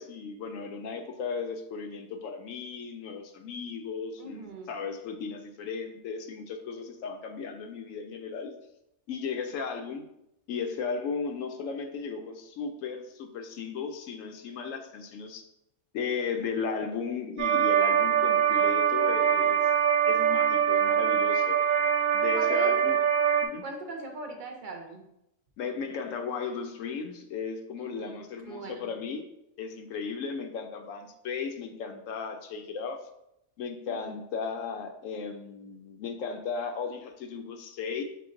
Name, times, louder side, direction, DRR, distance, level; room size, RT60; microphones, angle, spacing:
voice 1, 0.0-8.6 9.1-10.1 10.5-15.4 15.9-19.6 20.1-21.6 22.1-23.0 23.4-23.6 25.6-29.2 29.6-33.0 33.6-38.0, left 5 dB, 75° left, 5 dB, 0.9 m, -35 dB
voice 2, 4.2-4.7 22.3-22.8 23.6-25.0 27.8-28.9 33.9-34.1, right 3 dB, 45° right, 2 dB, 0.7 m, -39 dB
sound 1, 17.4-23.5, right 8 dB, 90° right, 1.0 m, -23 dB
5.6 x 2.1 x 3.7 m, 0.82 s
omnidirectional pair, 1.4 m